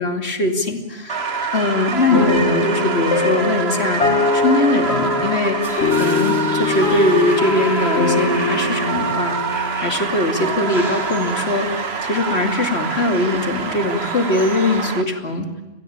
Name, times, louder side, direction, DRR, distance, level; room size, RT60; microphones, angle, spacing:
voice 1, 0.0-4.0 4.3-5.6 5.9-9.4 9.8-11.7 12.0-15.5, left 2 dB, 70° left, 4 dB, 3.0 m, -21 dB
sound 1, 1.1-15.0, right 5 dB, 65° right, 1.6 m, -26 dB
sound 2, 2.1-10.7, left 3 dB, 85° left, 2.0 m, -22 dB
sound 3, 5.6-14.8, equal, 20° left, 5.6 m, -35 dB
29.0 x 22.0 x 8.8 m, 1.1 s
omnidirectional pair, 1.1 m